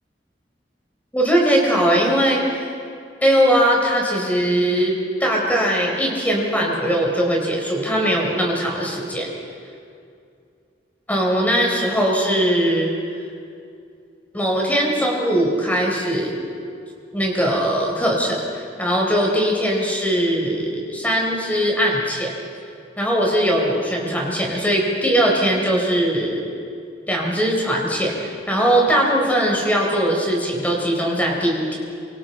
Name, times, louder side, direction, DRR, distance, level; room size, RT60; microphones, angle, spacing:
voice 1, 1.1-2.6 3.2-9.3 11.1-12.9 14.3-16.4 17.1-22.3 23.0-26.4 27.1-31.8, equal, 10° left, -1 dB, 4.1 m, -20 dB
28.0 x 25.0 x 4.4 m, 2.4 s
head